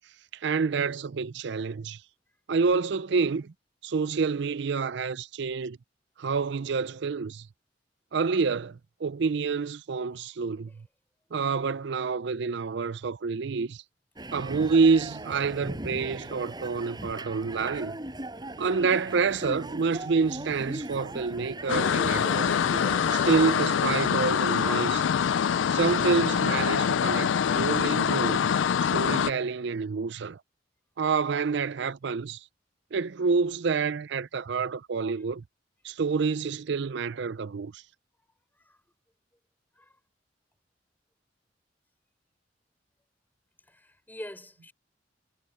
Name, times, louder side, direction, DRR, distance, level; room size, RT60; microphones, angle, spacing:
voice 1, 0.4-2.0 2.5-3.5 3.8-5.8 6.2-7.5 8.1-10.9 11.3-13.8 14.3-18.0 18.6-22.5 23.1-25.1 25.7-28.5 28.8-30.4 31.0-32.4 32.9-35.4 35.8-37.8, right 5 dB, 65° right, 0.5 m, -28 dB
sound 1, 14.2-23.6, right 1 dB, 25° right, 6.5 m, -39 dB
sound 2, 21.7-29.3, left 7 dB, 85° left, 0.4 m, -25 dB
voice 2, 43.7-44.7, left 1 dB, 10° left, 4.6 m, -44 dB
head